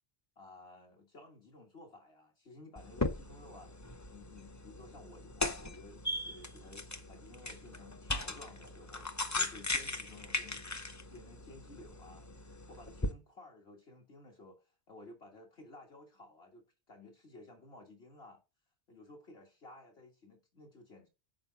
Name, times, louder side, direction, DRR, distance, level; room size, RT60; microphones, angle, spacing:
voice 1, 0.4-3.7 4.1-10.7 11.1-12.3 12.7-18.4 18.9-21.1, left 2 dB, 65° left, 1.9 m, -55 dB
sound 1, 2.8-13.1, left 2 dB, 20° left, 0.5 m, -39 dB
7.3 x 4.7 x 3.9 m
omnidirectional pair, 1.1 m